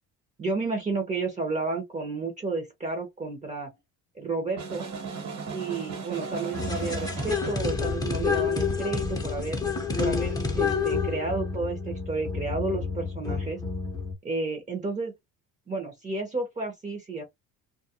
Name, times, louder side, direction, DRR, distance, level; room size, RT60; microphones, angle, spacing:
voice 1, 0.4-3.7 4.1-4.9 5.5-9.6 10.0-13.6 14.2-15.1 15.7-17.2, right 3 dB, 20° right, 0.8 m, -31 dB
sound 1, 4.6-7.7, right 5 dB, 50° right, 1.3 m, -36 dB
sound 2, 6.5-14.1, left 4 dB, 10° left, 0.7 m, -29 dB
2.3 x 2.2 x 2.7 m
cardioid pair, 110°, 34 cm